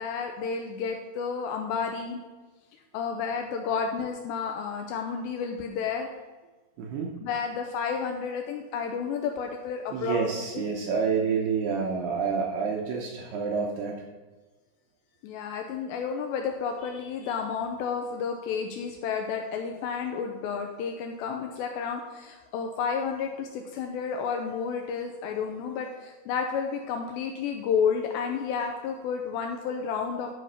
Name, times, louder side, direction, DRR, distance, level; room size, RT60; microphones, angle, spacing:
voice 1, 0.0-2.2 2.9-6.1 7.2-10.2 10.5-10.6 15.2-30.3, left 6 dB, 80° left, 3 dB, 2.5 m, -31 dB
voice 2, 6.8-7.1 9.9-14.0, right 5 dB, 75° right, 0 dB, 2.5 m, -28 dB
11.5 x 5.3 x 5.6 m, 1.3 s
omnidirectional pair, 5.6 m